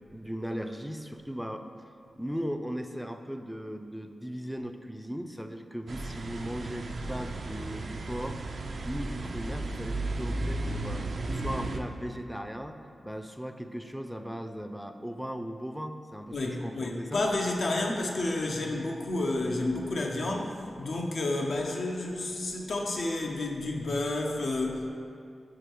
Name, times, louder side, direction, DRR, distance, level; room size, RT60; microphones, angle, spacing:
voice 1, 0.1-1.7 2.2-8.4 8.8-12.8 13.0-17.2, equal, ahead, 6 dB, 0.4 m, -37 dB
sound 1, 5.9-11.8, right 2 dB, 70° right, 0.4 m, -34 dB
voice 2, 16.3-24.9, left 2 dB, 75° left, 0 dB, 0.6 m, -30 dB
4.9 x 4.5 x 4.5 m, 2.4 s
cardioid pair, 55°, 0 cm